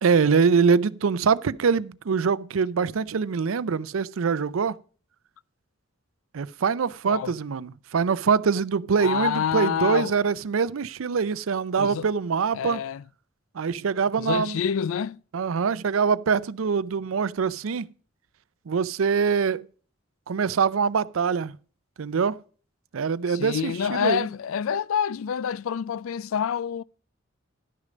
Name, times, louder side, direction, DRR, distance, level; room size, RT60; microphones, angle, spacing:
voice 1, 0.0-4.8 6.3-12.8 13.5-14.6 15.3-17.9 18.7-19.7 20.3-21.5 22.0-22.4 22.9-24.3, right 5 dB, 90° right, 0.5 m, -24 dB
voice 2, 9.0-10.1 11.8-12.1 12.5-13.0 14.2-15.2 23.3-26.8, left 8 dB, 90° left, 0.4 m, -27 dB
12.0 x 6.5 x 5.1 m
head